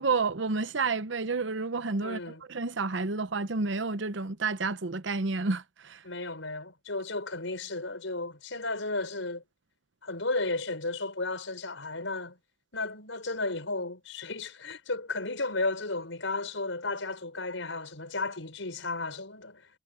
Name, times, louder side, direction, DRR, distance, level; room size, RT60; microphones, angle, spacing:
voice 1, 0.0-6.0, right 4 dB, 75° right, 0.9 m, -30 dB
voice 2, 2.0-2.4 6.0-9.4 10.0-12.4 12.7-19.7, left 2 dB, 90° left, 5.4 m, -34 dB
head